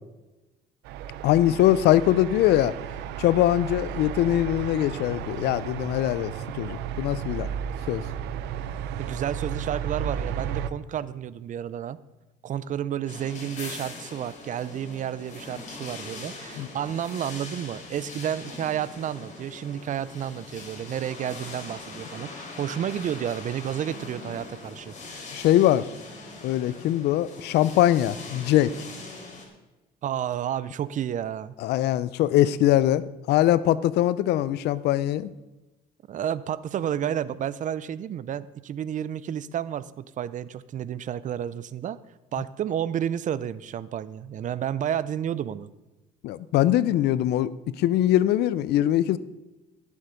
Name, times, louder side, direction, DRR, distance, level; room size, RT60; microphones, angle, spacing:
sound 1, 0.8-10.7, right 9 dB, 85° right, 0.7 m, -33 dB
voice 1, 1.2-2.7 3.2-7.5 7.9-8.0 16.6-16.7 25.3-25.9 26.4-28.7 31.6-35.3 46.2-49.2, left 13 dB, 75° left, 17 dB, 0.6 m, -22 dB
voice 2, 9.0-12.0 12.4-24.9 30.0-31.5 36.1-42.0 42.3-45.7, right 10 dB, 50° right, 17 dB, 0.6 m, -31 dB
sound 2, 13.1-29.5, left 3 dB, 45° left, 3.3 m, -41 dB
16.0 x 7.2 x 5.2 m, 1.1 s
cardioid pair, 110°, 17 cm